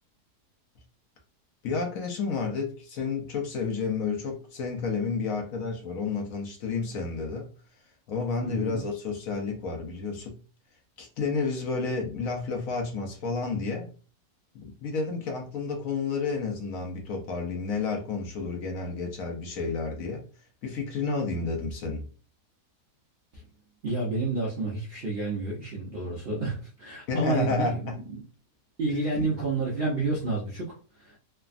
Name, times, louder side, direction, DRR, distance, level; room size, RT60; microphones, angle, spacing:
voice 1, 1.6-7.5 8.1-10.4 11.0-13.9 14.5-20.2 20.6-22.1 27.1-28.0 29.1-29.3, left 4 dB, 70° left, 2 dB, 1.0 m, -30 dB
voice 2, 8.4-8.8 23.3-23.4 23.8-28.2 28.8-31.2, right 3 dB, 55° right, -4 dB, 0.6 m, -30 dB
3.3 x 2.0 x 2.4 m, 0.37 s
omnidirectional pair, 1.7 m